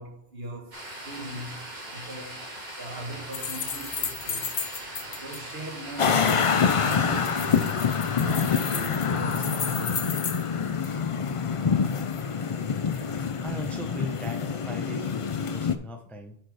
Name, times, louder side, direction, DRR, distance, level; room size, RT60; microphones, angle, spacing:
voice 1, 0.0-2.5 2.8-4.5 5.1-10.2, right 1 dB, 70° right, 1.7 m, -39 dB
sound 1, 0.7-11.0, right 1 dB, 45° right, 2.5 m, -42 dB
sound 2, 3.3-5.4 6.3-10.5 10.8-10.9, left 6 dB, 75° left, 1.2 m, -34 dB
sound 3, 6.0-15.8, left 6 dB, 45° left, 0.5 m, -26 dB
voice 2, 13.2-16.4, equal, ahead, 0.6 m, -39 dB
8.7 x 4.6 x 4.8 m
omnidirectional pair, 1.1 m